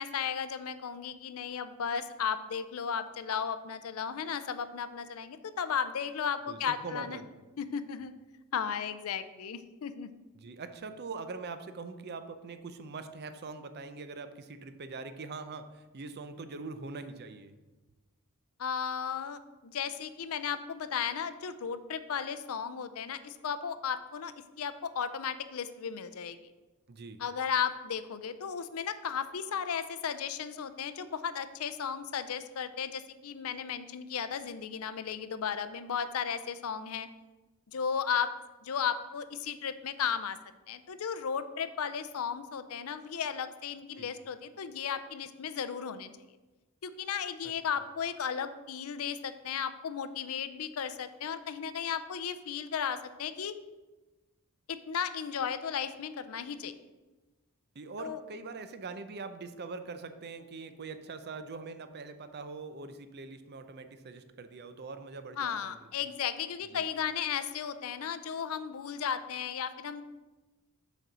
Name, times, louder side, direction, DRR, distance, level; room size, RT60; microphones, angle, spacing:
voice 1, 0.0-7.2 7.6-8.1 8.5-10.1 18.6-26.4 27.2-37.1 37.7-38.3 38.6-40.4 40.7-46.3 46.8-53.6 54.7-56.7 58.0-58.2 65.4-70.0, left 7 dB, 70° left, 12 dB, 0.5 m, -35 dB
voice 2, 6.5-7.3 10.3-17.5 26.9-27.2 44.0-44.1 47.4-47.5 57.7-65.8 66.7-66.8, right 4 dB, 50° right, 10 dB, 0.6 m, -43 dB
6.6 x 4.3 x 6.1 m, 1.2 s
head